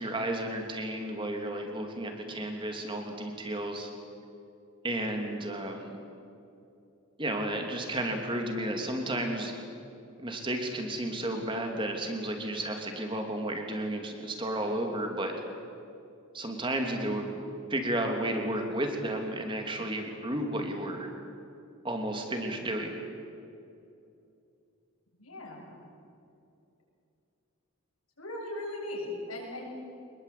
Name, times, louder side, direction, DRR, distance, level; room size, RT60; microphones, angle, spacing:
voice 1, 0.0-3.9 4.8-5.9 7.2-9.5 10.2-15.3 16.3-17.4 17.7-21.1 21.8-23.0, right 1 dB, 25° right, 3 dB, 3.0 m, -32 dB
voice 2, 25.2-25.8 28.2-29.7, left 1 dB, 90° left, -1 dB, 7.7 m, -38 dB
25.0 x 21.5 x 8.6 m, 2.6 s
head